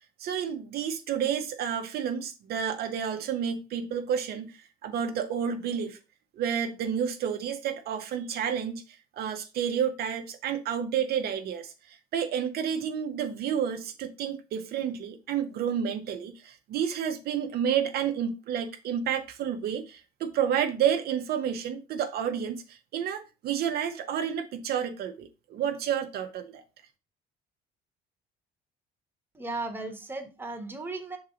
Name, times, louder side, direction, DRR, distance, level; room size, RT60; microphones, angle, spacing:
voice 1, 0.2-6.0 6.3-26.6, right 8 dB, 65° right, 0.9 m, -30 dB
voice 2, 29.3-31.2, right 3 dB, 10° right, 1.3 m, -36 dB
5.5 x 3.9 x 5.0 m
cardioid pair, 110°, 17 cm